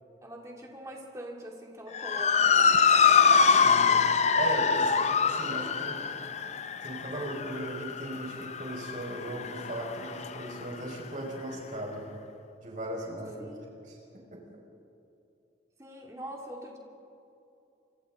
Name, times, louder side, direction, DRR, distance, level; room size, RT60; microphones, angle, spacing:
voice 1, 0.2-2.9 13.4-13.7 15.8-16.8, equal, 15° right, -1 dB, 2.4 m, -43 dB
Motor vehicle (road) / Siren, 1.9-10.5, left 6 dB, 35° left, 0.6 m, -24 dB
voice 2, 3.5-3.9 4.3-6.0 6.8-12.0 12.6-13.5 13.8-14.0, right 1 dB, 40° right, -2 dB, 5.3 m, -37 dB
28.5 x 24.0 x 3.8 m, 2.7 s
head